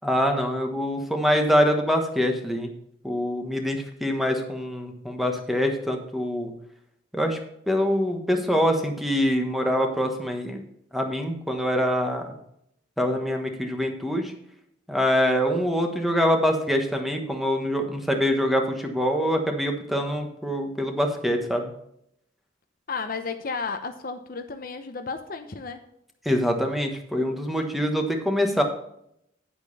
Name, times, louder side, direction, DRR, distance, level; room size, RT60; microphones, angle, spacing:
voice 1, 0.0-2.7 3.0-6.5 7.1-7.4 7.7-10.6 10.9-12.3 13.0-14.3 14.9-21.7 26.2-28.6, equal, ahead, 3 dB, 1.3 m, -24 dB
voice 2, 22.9-25.9, left 4 dB, 50° left, 7 dB, 0.8 m, -33 dB
9.0 x 8.1 x 4.1 m, 0.73 s
head